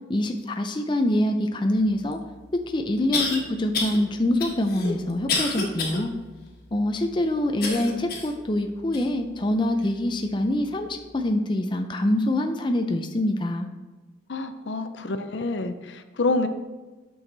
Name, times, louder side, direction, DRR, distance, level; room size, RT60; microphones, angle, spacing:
voice 1, 0.1-2.2 2.7-6.1 6.7-13.7, left 1 dB, 25° left, 5 dB, 0.5 m, -25 dB
sound 1, 2.1-2.2 3.1-3.4 3.7-4.0 4.4-6.0 6.5-6.6 7.6-8.4 8.9-9.0 9.8-9.9, left 4 dB, 50° left, 1.4 m, -28 dB
voice 2, 14.3-16.5, left 2 dB, 65° left, 9 dB, 0.6 m, -27 dB
8.9 x 6.3 x 3.9 m, 1.2 s
head